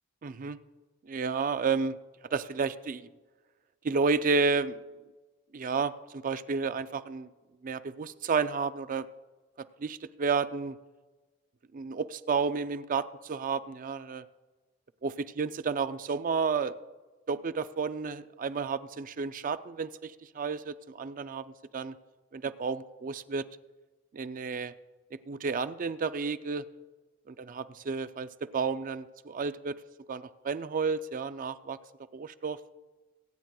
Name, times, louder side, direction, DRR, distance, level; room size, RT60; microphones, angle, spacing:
voice 1, 0.2-0.6 1.1-2.0 2.3-3.1 3.8-4.8 5.5-7.3 7.6-9.1 9.6-10.8 11.7-14.2 15.0-16.8 17.3-21.9 22.3-23.5 24.1-24.7 25.3-26.6 27.3-29.8 30.1-31.8 32.1-32.6, right 5 dB, 40° right, 13 dB, 0.4 m, -31 dB
23.5 x 9.2 x 2.3 m, 1.3 s
head